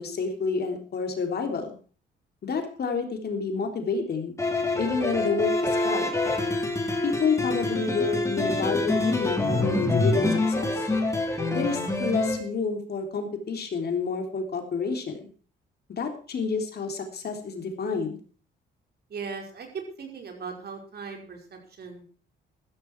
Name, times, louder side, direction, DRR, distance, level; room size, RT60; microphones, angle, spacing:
voice 1, 0.0-1.8 2.4-4.4 4.8-6.1 7.0-10.9 11.5-15.2 16.0-18.2, left 4 dB, 55° left, 4 dB, 3.5 m, -29 dB
sound 1, 4.4-12.4, left 2 dB, 15° left, 3.9 m, -26 dB
voice 2, 19.1-19.7 20.0-22.0, right 5 dB, 55° right, 2 dB, 5.0 m, -39 dB
14.5 x 13.5 x 4.7 m, 0.40 s
cardioid pair, 90°, 20 cm